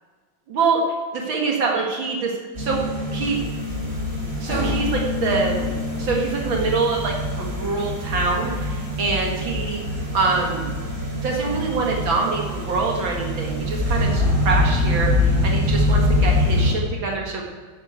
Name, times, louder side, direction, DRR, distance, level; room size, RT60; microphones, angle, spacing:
voice 1, 0.5-0.8 1.1-2.3 2.6-2.8 3.1-3.4 4.4-9.8 10.1-10.7 11.2-17.4, right 4 dB, 70° right, -1 dB, 2.3 m, -25 dB
sound 1, 2.6-16.7, left 1 dB, 30° right, 3.7 m, -24 dB
10.5 x 9.9 x 8.1 m, 1.5 s
omnidirectional pair, 2.2 m